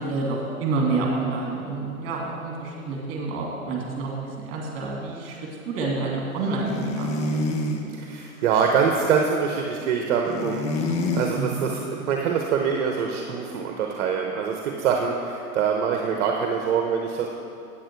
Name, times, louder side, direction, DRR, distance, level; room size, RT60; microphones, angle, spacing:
voice 1, 0.0-5.4 5.7-7.4 11.3-11.6, right 3 dB, 30° right, -1 dB, 2.4 m, -28 dB
sound 1, 6.6-7.9 10.3-11.3, left 2 dB, 15° left, 0.5 m, -26 dB
voice 2, 7.9-17.3, right 6 dB, 55° right, 2 dB, 1.0 m, -24 dB
8.9 x 8.8 x 4.6 m, 2.5 s
hypercardioid pair, 125°, 44 cm